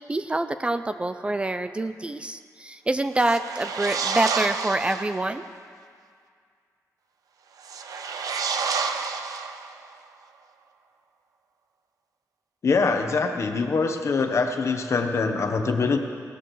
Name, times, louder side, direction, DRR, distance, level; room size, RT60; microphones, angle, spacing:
voice 1, 0.0-5.5, right 2 dB, 20° right, 10 dB, 0.3 m, -26 dB
sound 1, 3.2-5.2 7.6-9.9, right 5 dB, 75° right, 0.7 m, -29 dB
voice 2, 12.6-16.0, left 4 dB, 50° left, 6 dB, 0.9 m, -23 dB
17.5 x 13.5 x 3.1 m, 2.2 s
wide cardioid pair, 145°, 6 cm